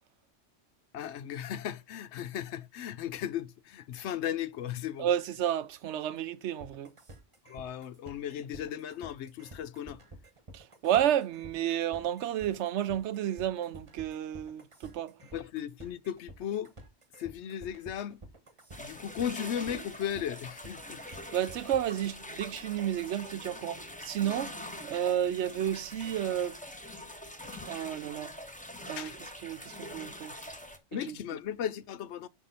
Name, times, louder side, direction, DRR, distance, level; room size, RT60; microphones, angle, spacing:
voice 1, 0.9-5.1 7.5-10.0 15.3-16.7 17.2-18.2 18.8-21.0 29.0-29.2 30.9-32.3, left 9 dB, 70° left, 0.8 m, -36 dB
voice 2, 5.0-6.9 10.5-15.2 21.1-24.6 24.8-26.6 27.6-28.3 28.8-30.4 31.1-31.2, right 10 dB, 70° right, 0.8 m, -31 dB
sound 1, 6.6-22.0, right 1 dB, 25° right, 1.0 m, -50 dB
sound 2, 18.7-30.8, left 1 dB, 5° left, 0.9 m, -44 dB
5.9 x 5.6 x 3.9 m
omnidirectional pair, 1.2 m